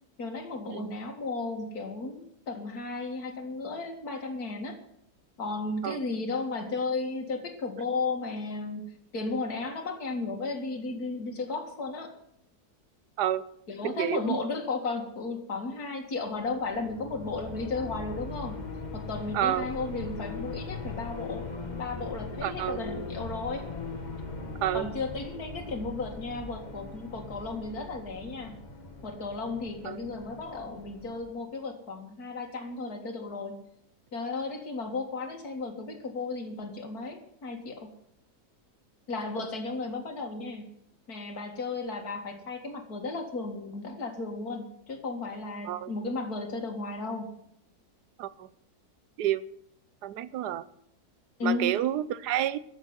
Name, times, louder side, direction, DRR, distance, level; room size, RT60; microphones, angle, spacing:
voice 1, 0.2-4.8 5.4-8.9 9.1-12.1 13.7-18.6 18.9-21.5 21.8-23.7 24.7-28.6 29.0-33.6 34.1-37.9 39.1-40.7 41.1-47.3 51.4-51.7, left 3 dB, 70° left, 4 dB, 2.6 m, -34 dB
voice 2, 13.8-14.4 19.3-19.7 22.4-22.8 24.6-24.9 29.8-30.0 45.6-45.9 48.2-48.5 49.2-49.5 50.0-50.7 51.4-52.6, right 12 dB, 85° right, 17 dB, 1.3 m, -29 dB
sound 1, 16.3-31.3, left 3 dB, 25° left, 1.8 m, -40 dB
13.5 x 7.3 x 9.6 m, 0.73 s
omnidirectional pair, 1.7 m